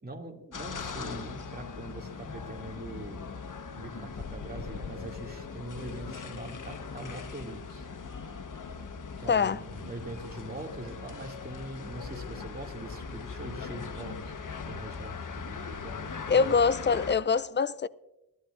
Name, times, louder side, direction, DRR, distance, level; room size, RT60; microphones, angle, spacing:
voice 1, 0.0-3.3 3.7-7.9 9.2-14.3 14.6-16.6, right 2 dB, 25° right, 2.6 m, -42 dB
sound 1, 0.5-17.2, left 5 dB, 60° left, 1.2 m, -40 dB
voice 2, 9.3-9.6 16.3-17.9, left 5 dB, 30° left, 0.5 m, -24 dB
22.5 x 11.5 x 2.6 m
cardioid pair, 45°, 35 cm